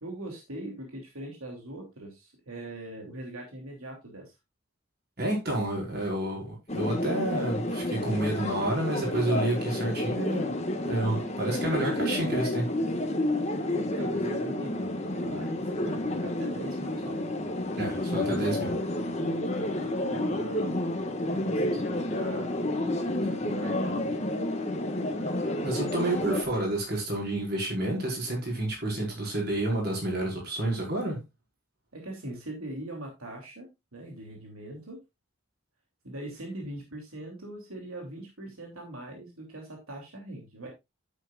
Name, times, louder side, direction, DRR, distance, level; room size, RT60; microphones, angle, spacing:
voice 1, 0.0-4.3 13.4-17.2 19.0-20.8 21.3-22.5 23.0-24.3 31.9-35.0 36.0-40.7, right 1 dB, 90° right, 3.1 m, -41 dB
voice 2, 5.2-10.5 10.8-12.7 17.8-18.8 25.6-31.2, right 1 dB, 45° right, 5.4 m, -29 dB
sound 1, 6.7-26.4, left 1 dB, 30° left, 1.7 m, -30 dB
10.5 x 9.0 x 2.5 m
head